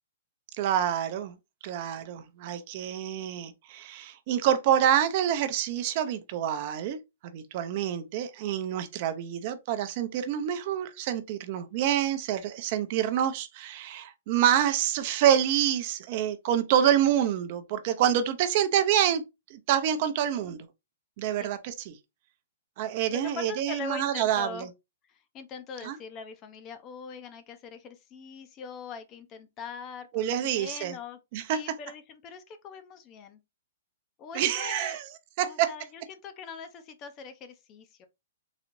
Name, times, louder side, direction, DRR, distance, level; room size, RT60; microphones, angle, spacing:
voice 1, 0.5-1.3 1.6-7.0 7.3-19.2 19.5-20.7 21.2-22.0 22.8-24.7 25.8-26.0 30.1-30.9 31.3-31.6 34.3-35.0 35.4-35.7, right 10 dB, 45° right, 0.6 m, -27 dB
voice 2, 23.1-24.7 25.1-31.2 31.5-33.4 34.2-35.0 35.4-38.1, left 5 dB, 30° left, 0.6 m, -42 dB
4.0 x 2.4 x 3.0 m
hypercardioid pair, 140°, 0 cm